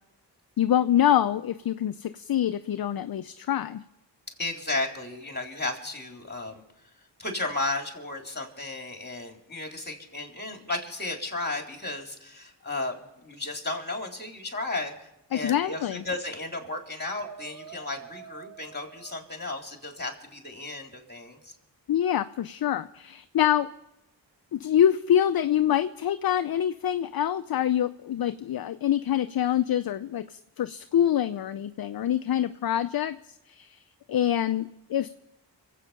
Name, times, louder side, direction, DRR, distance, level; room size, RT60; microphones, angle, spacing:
voice 1, 0.6-3.8 15.3-16.0 21.9-23.7 24.5-33.2 33.5-33.8 34.1-35.1, left 10 dB, 50° left, 11 dB, 0.6 m, -25 dB
voice 2, 4.4-6.6 7.2-21.5, left 2 dB, 20° left, 2 dB, 3.7 m, -34 dB
sound 1, 16.6-16.9 17.2-20.0, right 7 dB, 40° right, 1.6 m, -47 dB
25.0 x 8.5 x 5.7 m, 0.89 s
cardioid pair, 45°, 45 cm